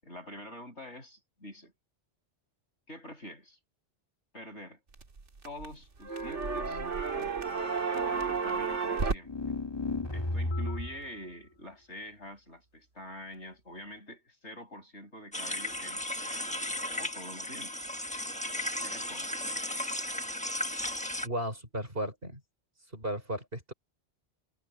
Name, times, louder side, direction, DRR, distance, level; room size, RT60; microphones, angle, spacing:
voice 1, 0.0-1.7 2.9-3.6 4.3-4.8 5.4-6.8 7.1-7.4 8.0-9.3 10.1-16.5 17.0-17.9 18.8-19.4, left 1 dB, 75° left, 7.1 m, -46 dB
various sounds of a record player, 4.9-5.7 6.0-9.2, right 5 dB, 85° right, 2.2 m, -31 dB
sound 1, 9.2-11.0, left 2 dB, 20° left, 1.8 m, -33 dB
sound 2, 15.3-21.3, left 1 dB, 5° left, 1.4 m, -35 dB
voice 2, 21.2-22.4 22.9-23.7, right 1 dB, 50° right, 6.2 m, -35 dB
omnidirectional pair, 1.2 m